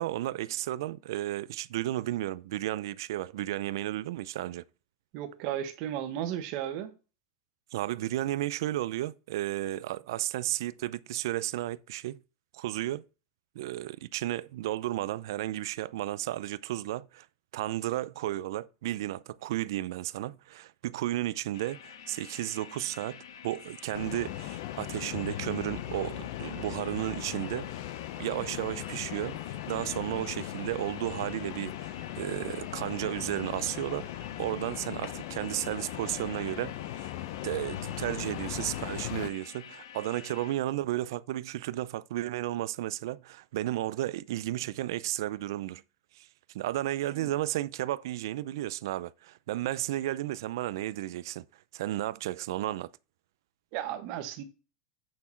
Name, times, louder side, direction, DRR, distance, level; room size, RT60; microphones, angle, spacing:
voice 1, 0.0-4.6 7.7-12.2 12.5-13.0 13.5-17.3 17.5-27.7 28.2-29.4 29.7-37.1 37.4-45.8 46.2-46.3 46.5-51.4 51.7-52.9, right 14 dB, 60° right, 0.5 m, -33 dB
voice 2, 5.1-6.9 47.1-47.3 53.7-54.4, right 11 dB, 40° right, 1.3 m, -34 dB
sound 1, 21.5-40.5, left 8 dB, 90° left, 1.5 m, -48 dB
sound 2, 23.9-39.3, left 13 dB, 50° left, 0.7 m, -38 dB
8.5 x 5.9 x 4.4 m
supercardioid pair, 175°, 2 cm